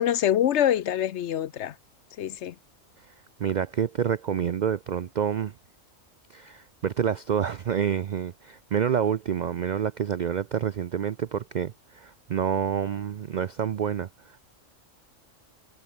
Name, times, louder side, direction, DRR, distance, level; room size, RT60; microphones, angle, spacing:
voice 1, 0.0-1.7 2.2-2.5, left 10 dB, 65° left, 0.9 m, -25 dB
voice 2, 3.4-5.5 6.3-14.4, right 8 dB, 65° right, 0.4 m, -28 dB
omnidirectional pair, 1.3 m